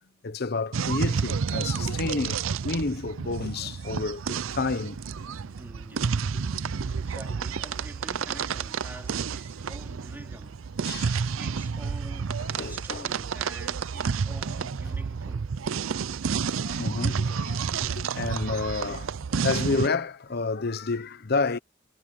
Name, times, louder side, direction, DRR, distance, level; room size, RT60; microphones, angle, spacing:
voice 1, 0.2-5.0 6.4-6.6 10.8-11.2 12.4-13.1 16.3-21.6, left 3 dB, 50° left, 0.8 m, -30 dB
sound 1, 0.7-19.9, right 6 dB, 80° right, 0.5 m, -30 dB
voice 2, 5.5-10.7 11.4-15.6, right 1 dB, 10° right, 3.5 m, -47 dB
head